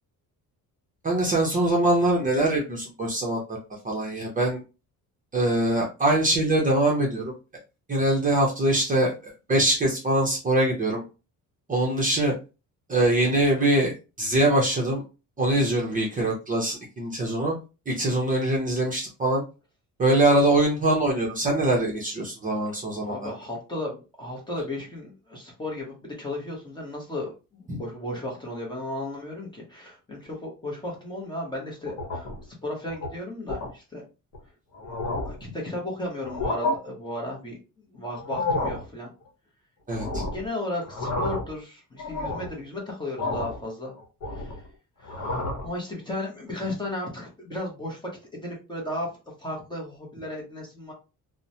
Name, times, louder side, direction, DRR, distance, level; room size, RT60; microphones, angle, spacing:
voice 1, 1.0-3.6 3.8-4.6 5.3-7.3 7.9-11.0 11.7-12.3 12.9-15.0 15.4-17.5 17.9-19.4 20.0-23.3 27.7-27.8 35.4-35.5 39.9-40.2, right 1 dB, 25° right, -2 dB, 0.6 m, -23 dB
voice 2, 23.0-32.3 32.6-34.0 35.3-37.6 37.9-39.1 40.0-43.9 44.3-44.6 45.0-50.9, left 1 dB, 15° left, -2 dB, 0.7 m, -35 dB
sound 1, 31.9-32.4 32.9-33.1 33.5-33.7 34.3-34.4 34.7-35.4 36.2-36.8 38.2-38.9 39.9-40.5 40.8-41.6 42.0-42.6 43.2-43.6 44.0-44.7 45.0-45.7, left 2 dB, 50° left, 1.0 m, -30 dB
2.9 x 2.1 x 2.6 m, 0.30 s
cardioid pair, 160°, 35 cm